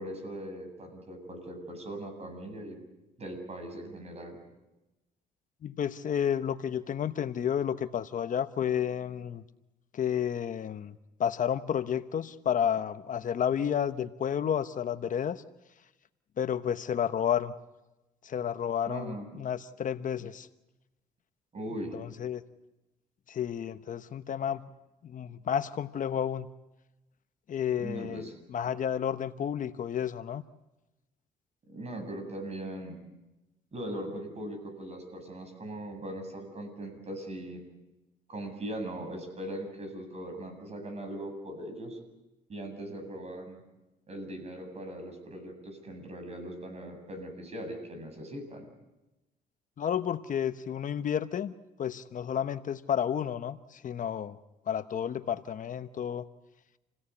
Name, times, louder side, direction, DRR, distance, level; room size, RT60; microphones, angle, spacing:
voice 1, 0.0-2.8 3.2-4.4 18.9-19.3 21.5-21.9 27.8-28.3 31.7-33.0 33.7-37.7 38.3-42.0 42.5-43.6 44.1-48.7, right 1 dB, 40° right, 6 dB, 7.9 m, -40 dB
voice 2, 5.6-9.4 9.9-10.9 11.2-15.4 16.4-17.5 18.2-20.5 21.9-22.4 23.3-24.6 25.0-26.5 27.5-30.4 49.8-51.5 51.8-54.4 54.7-56.3, left 8 dB, 50° left, 11 dB, 1.0 m, -31 dB
28.5 x 17.0 x 8.5 m, 1.0 s
cardioid pair, 85°, 17 cm